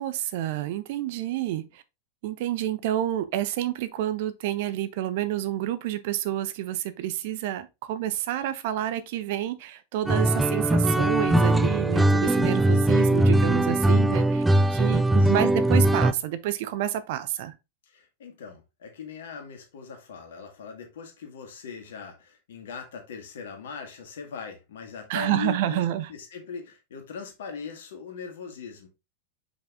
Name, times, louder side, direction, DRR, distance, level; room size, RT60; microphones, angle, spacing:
voice 1, 0.0-1.8 2.2-14.4 14.7-17.5 25.1-26.1, right 12 dB, 50° right, 0.7 m, -29 dB
sound 1, 10.1-16.1, right 1 dB, 5° right, 0.4 m, -21 dB
voice 2, 15.0-15.3 17.9-25.8 26.1-28.9, left 6 dB, 60° left, 1.9 m, -40 dB
5.8 x 5.1 x 3.5 m
figure-of-eight pair, 90°, 0 cm